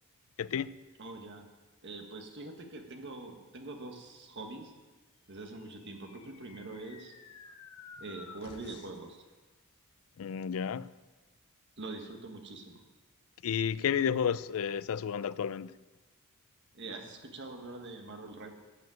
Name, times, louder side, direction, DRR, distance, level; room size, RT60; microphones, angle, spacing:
voice 1, 0.4-0.7 10.2-10.9 13.4-15.7, left 7 dB, 65° left, 0.4 m, -31 dB
voice 2, 1.0-1.5 1.8-4.7 5.3-7.1 8.0-9.2 11.8-12.8 16.7-18.5, right 2 dB, 55° right, 1.5 m, -44 dB
sound 1, 5.5-9.1, left 5 dB, 90° left, 1.2 m, -53 dB
15.0 x 5.1 x 9.3 m
head